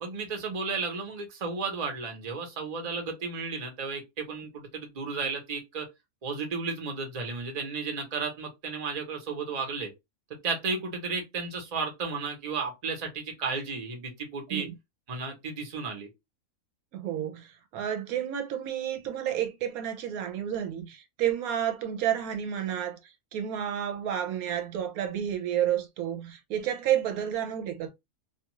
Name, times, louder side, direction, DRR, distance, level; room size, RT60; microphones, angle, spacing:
voice 1, 0.0-5.9 6.2-9.9 10.4-14.7 15.1-16.1, right 4 dB, 35° right, 0.7 m, -33 dB
voice 2, 16.9-27.9, right 10 dB, 75° right, 1.0 m, -30 dB
2.6 x 2.3 x 2.9 m
omnidirectional pair, 1.6 m